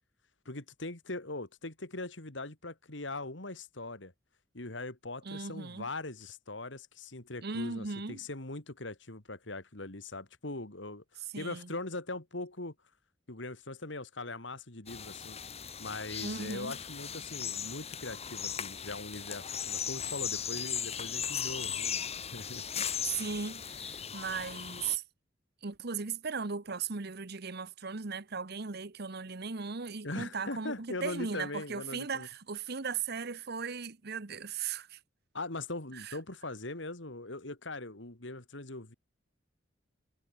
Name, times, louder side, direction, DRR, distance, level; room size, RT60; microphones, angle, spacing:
voice 1, 0.4-4.1 4.5-11.0 11.4-12.7 13.3-15.4 15.8-22.6 30.0-32.3 35.3-38.9, left 2 dB, 70° left, 3.0 m, -41 dB
voice 2, 5.2-5.9 7.4-8.2 11.3-11.7 16.2-16.8 22.8-22.9 23.1-25.0 25.6-35.0 35.9-36.2, right 5 dB, 55° right, 1.1 m, -37 dB
sound 1, 14.9-25.0, left 8 dB, 35° left, 2.3 m, -37 dB
head